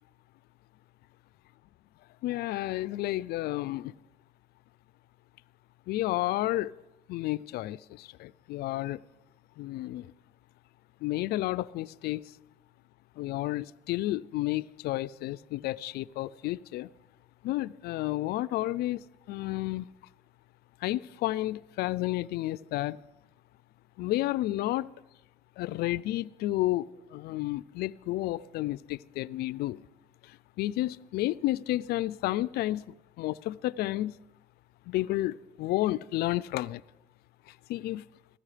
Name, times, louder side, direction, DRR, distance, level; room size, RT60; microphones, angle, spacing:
voice 1, 2.2-3.9 5.9-6.7 7.1-9.0 9.6-10.1 11.0-12.2 13.2-16.9 17.4-19.0 19.3-19.9 20.8-23.0 24.0-24.9 25.6-29.8 30.6-32.8 33.2-34.1 34.9-36.8 37.7-38.0, left 16 dB, 75° left, 0.4 m, -31 dB
16.0 x 13.5 x 5.0 m
supercardioid pair, 75°, 16 cm